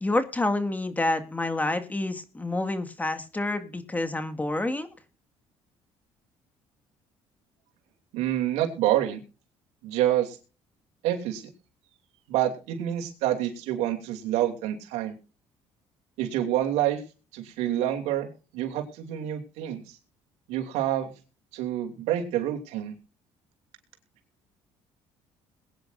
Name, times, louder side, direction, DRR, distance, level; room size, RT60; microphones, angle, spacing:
voice 1, 0.0-4.9, left 2 dB, 15° left, 8 dB, 2.1 m, -28 dB
voice 2, 8.1-9.2 9.8-10.4 11.0-11.4 12.3-15.1 16.2-17.0 17.3-18.3 18.5-19.8 20.5-21.1 21.5-22.9, right 12 dB, 90° right, 4 dB, 2.9 m, -27 dB
21.5 x 9.9 x 2.6 m, 0.35 s
cardioid pair, 100°, 11 cm